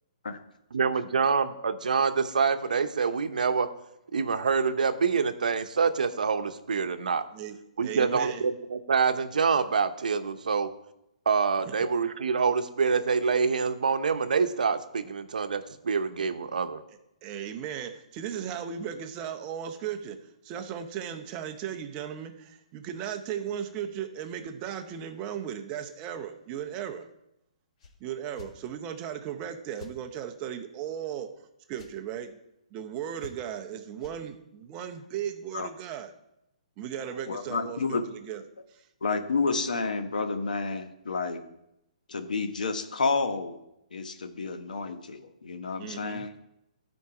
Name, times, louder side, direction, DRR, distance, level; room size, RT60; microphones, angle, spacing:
voice 1, 0.7-3.7 4.1-7.2 7.8-10.7 11.3-16.8, right 5 dB, 90° right, 10 dB, 0.7 m, -26 dB
voice 2, 7.3-8.4 11.6-11.7 16.9-27.1 28.0-31.3 31.7-32.4 32.7-36.1 36.8-38.4 38.7-38.9 45.8-46.3, right 9 dB, 20° right, 7 dB, 0.7 m, -36 dB
sound 1, 27.8-27.9 28.3-28.5 29.8-29.9 31.7-31.9 33.2-33.6 34.0-34.2, left 4 dB, 45° left, 1.6 m, -47 dB
voice 3, 37.3-38.0 39.0-41.5 42.1-43.6 43.9-46.3, left 4 dB, 90° left, 8 dB, 1.1 m, -30 dB
12.5 x 4.6 x 4.8 m, 0.83 s
hypercardioid pair, 160°, 4 cm